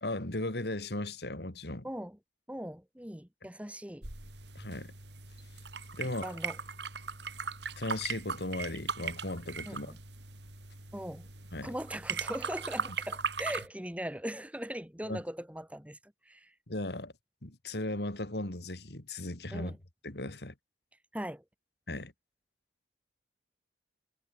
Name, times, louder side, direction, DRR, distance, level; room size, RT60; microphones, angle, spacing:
voice 1, 0.0-1.9 4.5-4.9 6.0-6.3 7.8-9.9 11.5-11.7 15.1-15.2 16.7-17.1 17.4-19.8 20.0-20.5 21.9-22.1, left 2 dB, 70° left, 2.6 m, -37 dB
voice 2, 1.8-2.2 2.5-4.1 6.2-6.6 9.7-10.0 10.9-11.3 11.6-16.5 19.5-19.8 21.1-21.4, right 1 dB, 10° right, 2.1 m, -40 dB
sound 1, 4.0-13.7, right 5 dB, 80° right, 5.2 m, -39 dB
head